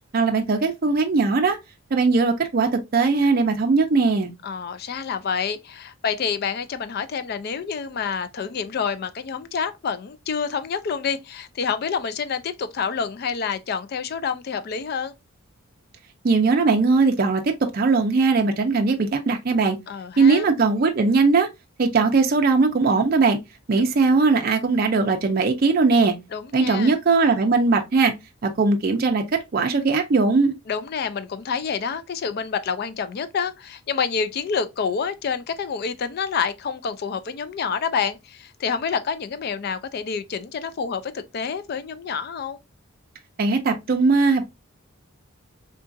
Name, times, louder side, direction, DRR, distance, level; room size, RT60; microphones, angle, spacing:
voice 1, 0.1-1.6 1.9-4.3 16.2-19.8 20.2-21.5 21.8-23.4 23.7-26.1 26.5-28.1 28.4-30.5 43.4-44.5, right 4 dB, 40° right, 0.4 m, -19 dB
voice 2, 4.4-15.1 19.9-20.5 26.3-27.0 30.7-42.6, left 6 dB, 45° left, 0.3 m, -28 dB
3.7 x 2.4 x 2.5 m
head